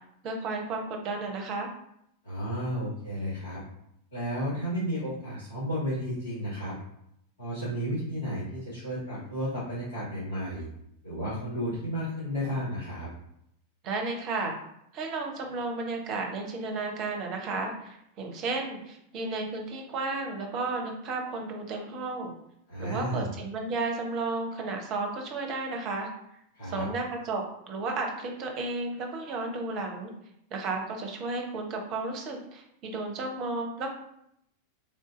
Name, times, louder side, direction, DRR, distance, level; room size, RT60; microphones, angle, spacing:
voice 1, 0.2-1.7 13.8-14.5 14.9-22.3 22.8-26.1 26.6-30.1 30.5-33.9, right 3 dB, 35° right, 2 dB, 0.8 m, -33 dB
voice 2, 2.2-3.6 4.1-6.7 7.4-10.7 11.0-13.1 22.7-23.3 26.5-26.9, equal, 70° left, -11 dB, 1.5 m, -32 dB
3.6 x 2.6 x 3.7 m, 0.76 s
figure-of-eight pair, 90°, 0 cm